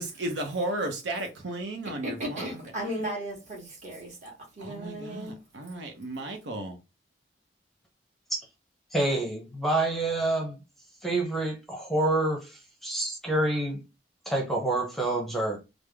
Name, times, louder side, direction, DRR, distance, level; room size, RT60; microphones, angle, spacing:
voice 1, 0.0-2.6 2.9-3.0 4.6-6.8, right 2 dB, 80° right, 0.7 m, -34 dB
voice 2, 2.0-5.3, right 1 dB, 40° right, 1.5 m, -36 dB
voice 3, 8.9-10.6 11.0-13.8 14.3-15.6, right 2 dB, ahead, 0.7 m, -27 dB
3.3 x 2.0 x 3.3 m
head